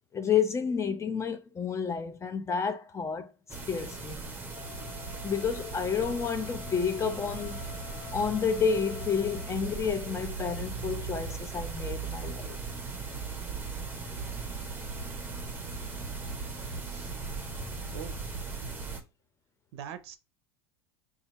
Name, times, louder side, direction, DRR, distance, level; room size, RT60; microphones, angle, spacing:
voice 1, 0.1-3.3 3.7-4.2 5.2-7.7 8.1-12.6, left 6 dB, 20° left, 0.6 m, -30 dB
sound 1, 3.5-19.0, right 4 dB, 15° right, 0.9 m, -38 dB
Wind instrument woodwind instrument, 4.5-9.5, left 14 dB, 85° left, 0.7 m, -48 dB
voice 2, 16.8-17.1 17.9-18.3 19.7-20.2, right 9 dB, 70° right, 0.6 m, -43 dB
2.7 x 2.5 x 4.2 m
hypercardioid pair, 85°, 14 cm